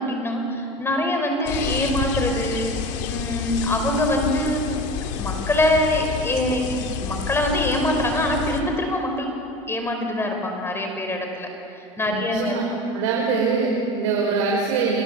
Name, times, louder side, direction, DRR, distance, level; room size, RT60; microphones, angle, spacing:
voice 1, 0.0-2.7 3.1-4.7 5.2-9.3 9.7-12.8, left 1 dB, 15° left, 3 dB, 4.9 m, -24 dB
sound 1, 1.5-8.6, left 8 dB, 80° left, 3.0 m, -29 dB
voice 2, 12.1-12.6 12.9-15.0, right 4 dB, 85° right, -2 dB, 5.6 m, -23 dB
28.5 x 25.5 x 8.2 m, 2.7 s
supercardioid pair, 120°, 16 cm